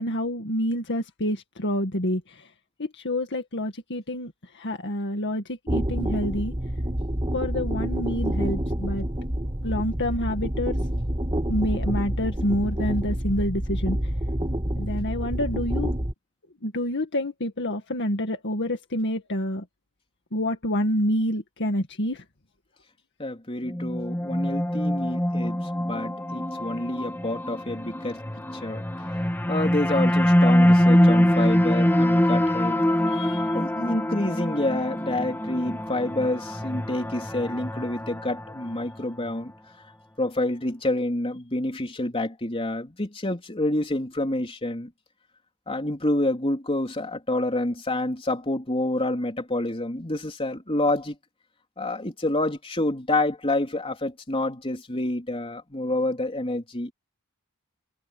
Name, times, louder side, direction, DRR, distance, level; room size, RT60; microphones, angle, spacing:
voice 1, 0.0-2.5 2.8-6.5 7.3-9.1 9.6-10.8 11.5-14.0 14.8-15.9 16.6-19.6 20.3-22.2, left 1 dB, 55° left, 2.0 m, -28 dB
sound 1, 5.7-16.1, equal, 20° right, 1.8 m, -28 dB
voice 2, 23.2-28.2 28.6-28.8 29.5-32.8 33.1-39.5 40.2-44.9 45.7-51.2 51.8-56.9, left 1 dB, 25° left, 3.7 m, -28 dB
sound 2, 23.7-39.0, equal, 10° left, 1.5 m, -24 dB
head